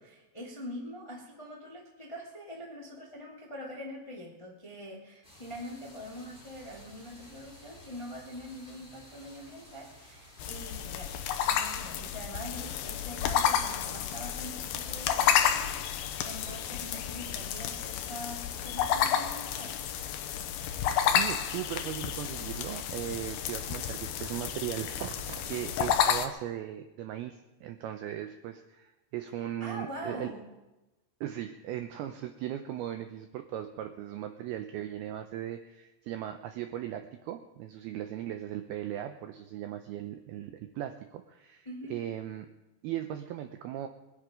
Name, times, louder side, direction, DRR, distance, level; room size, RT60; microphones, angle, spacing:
voice 1, 0.0-11.1 11.4-19.8 29.4-30.4 41.6-42.0, equal, 15° left, -2 dB, 0.9 m, -44 dB
sound 1, 5.2-11.5, equal, ahead, 6.6 m, -54 dB
sound 2, 10.4-26.3, left 9 dB, 75° left, 2.3 m, -31 dB
voice 2, 21.0-30.3 31.2-42.5 42.8-43.9, right 12 dB, 85° right, 7 dB, 2.2 m, -38 dB
21.5 x 10.5 x 5.1 m, 1.0 s
omnidirectional pair, 5.2 m